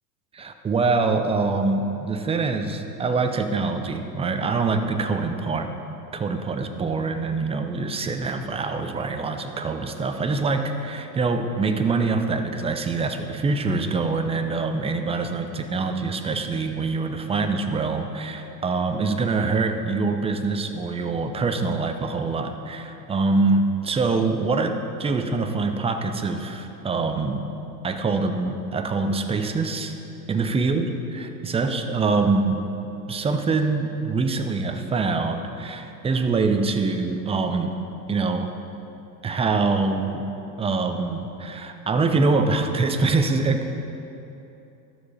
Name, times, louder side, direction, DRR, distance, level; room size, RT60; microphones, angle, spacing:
voice 1, 0.3-27.5 27.8-30.0 30.3-32.6 33.1-37.7 38.1-38.5 39.2-40.3 40.6-43.8, right 3 dB, 10° right, 6 dB, 0.6 m, -24 dB
12.5 x 7.0 x 5.3 m, 2.9 s
hypercardioid pair, 95°, 49 cm